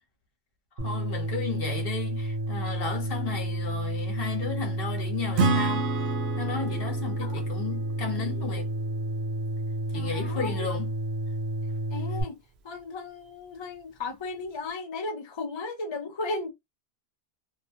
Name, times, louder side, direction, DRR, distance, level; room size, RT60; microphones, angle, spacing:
voice 1, 0.8-5.9 6.4-8.7 9.9-10.9, left 5 dB, 65° left, 1.1 m, -34 dB
sound 1, 0.8-12.2, right 1 dB, 55° right, 1.1 m, -31 dB
Acoustic guitar / Strum, 5.4-8.9, right 4 dB, 80° right, 0.9 m, -30 dB
voice 2, 8.0-8.6 9.9-10.7 11.9-12.4 12.6-16.5, left 3 dB, 35° left, 0.5 m, -35 dB
2.7 x 2.2 x 2.7 m
omnidirectional pair, 1.1 m